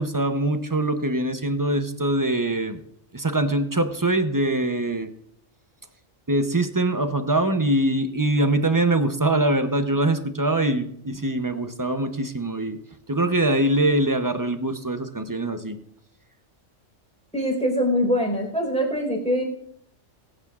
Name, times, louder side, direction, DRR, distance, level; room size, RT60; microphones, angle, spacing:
voice 1, 0.0-2.8 3.1-5.1 6.3-12.8 13.1-15.8, right 2 dB, 25° right, 8 dB, 0.5 m, -23 dB
voice 2, 17.3-19.4, equal, 5° left, -1 dB, 4.1 m, -23 dB
22.5 x 8.9 x 2.4 m, 0.71 s
omnidirectional pair, 1.3 m